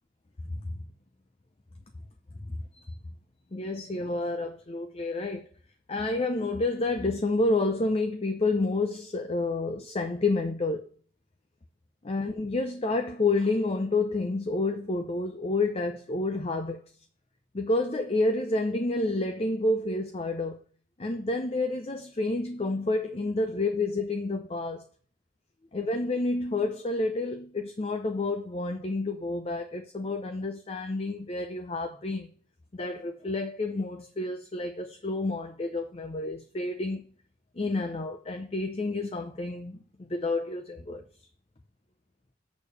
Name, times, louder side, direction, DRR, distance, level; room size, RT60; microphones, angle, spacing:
voice 1, 2.5-2.9 3.5-5.5 5.9-10.9 12.0-16.8 17.5-20.6 21.0-24.8 25.7-32.3 32.7-37.0 37.6-41.0, left 2 dB, 35° left, 0.6 m, -29 dB
6.7 x 5.2 x 6.6 m
head